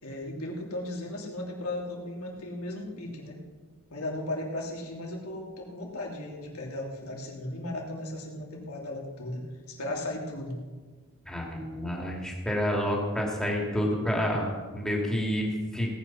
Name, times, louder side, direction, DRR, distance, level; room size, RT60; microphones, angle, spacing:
voice 1, 0.0-3.4 3.9-10.6, left 1 dB, 90° left, -1 dB, 3.0 m, -36 dB
voice 2, 11.3-15.9, equal, 5° left, -2 dB, 2.4 m, -29 dB
18.0 x 8.7 x 5.8 m, 1.4 s
head